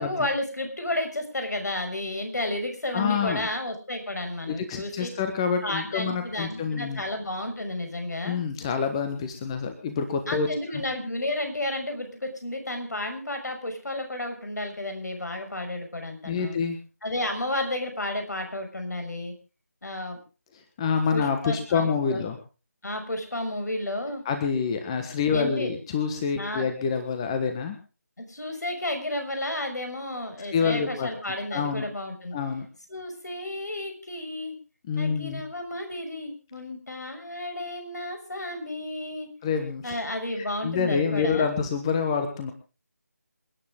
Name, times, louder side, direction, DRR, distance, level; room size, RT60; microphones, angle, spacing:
voice 1, 0.0-5.1 5.6-8.4 10.3-16.6 17.0-19.3 19.8-20.2 21.1-22.2 22.8-24.2 25.3-25.7 26.4-26.6 28.3-32.4 32.9-34.6 35.0-39.3 39.8-41.5, left 1 dB, 80° left, 5 dB, 6.1 m, -32 dB
voice 2, 2.9-3.5 4.5-7.0 8.2-10.5 16.2-16.8 20.8-22.4 24.2-27.8 30.5-31.1 31.5-31.8 32.3-32.7 34.9-35.4 39.4-40.0 40.6-42.5, left 6 dB, 20° left, 7 dB, 1.4 m, -27 dB
28.0 x 9.8 x 3.7 m, 0.35 s
figure-of-eight pair, 165°, 9 cm